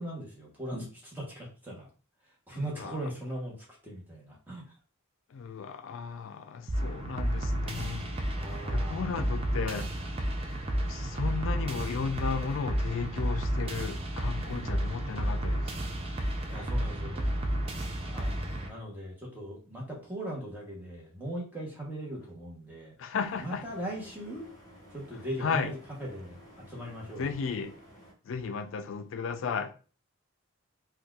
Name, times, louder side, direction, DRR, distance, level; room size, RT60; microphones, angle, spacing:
voice 1, 0.0-1.9 2.5-3.6 3.8-4.7 8.3-9.1 14.5-14.8 16.5-17.4 18.0-23.0 23.4-24.5 24.9-27.3, equal, 10° right, 0.9 m, -39 dB
voice 2, 2.5-3.0 5.3-8.1 8.7-10.1 10.9-15.7 23.0-23.6 25.4-25.7 27.2-27.7 28.3-29.7, left 5 dB, 60° left, 0.4 m, -34 dB
sound 1, 6.7-18.7, right 1 dB, 25° right, 0.4 m, -31 dB
sound 2, 23.1-28.1, equal, 30° left, 1.4 m, -53 dB
4.1 x 2.3 x 2.3 m
head